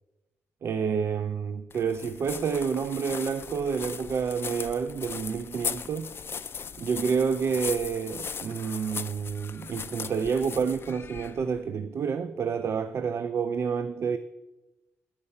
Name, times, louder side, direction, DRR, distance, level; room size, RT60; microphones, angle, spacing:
voice 1, 0.6-6.1 6.8-14.2, right 6 dB, 55° right, 0.3 m, -29 dB
sound 1, 1.7-11.6, left 6 dB, 45° left, 0.4 m, -38 dB
Bowed string instrument, 5.5-10.4, right 3 dB, 70° right, 1.4 m, -61 dB
8.6 x 4.7 x 5.4 m
cardioid pair, 70°, 5 cm